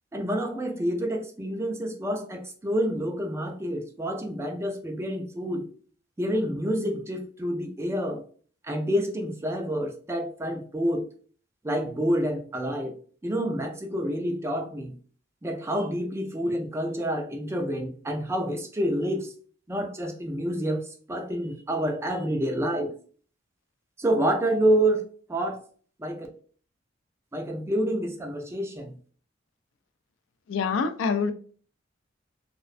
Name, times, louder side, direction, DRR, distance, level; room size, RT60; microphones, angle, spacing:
voice 1, 0.1-5.7 6.2-8.2 8.6-11.0 11.6-13.0 13.2-14.9 15.4-19.3 19.7-22.9 24.0-25.0 25.3-25.6 26.0-26.3 27.3-28.9, right 1 dB, 15° right, 3 dB, 0.4 m, -28 dB
voice 2, 30.5-31.3, left 5 dB, 75° left, 9 dB, 0.3 m, -25 dB
2.4 x 2.1 x 2.4 m, 0.43 s
head